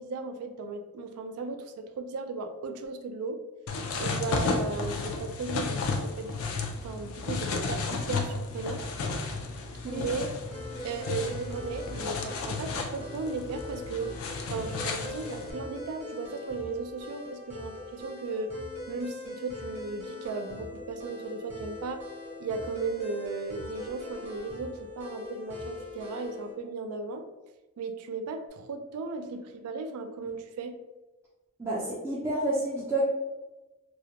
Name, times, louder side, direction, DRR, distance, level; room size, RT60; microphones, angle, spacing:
voice 1, 0.0-3.4 3.9-6.4 6.8-8.8 9.8-10.3 10.8-14.1 14.5-18.6 18.9-22.0 22.4-27.2 27.8-30.7, right 4 dB, 90° right, 7 dB, 0.3 m, -36 dB
sound 1, 3.7-15.5, left 3 dB, 70° left, 0.4 m, -33 dB
sound 2, 10.5-26.5, left 2 dB, 30° right, 0.7 m, -42 dB
voice 2, 31.6-33.1, right 1 dB, 10° right, -8 dB, 0.3 m, -29 dB
2.4 x 2.1 x 2.7 m, 1.1 s
head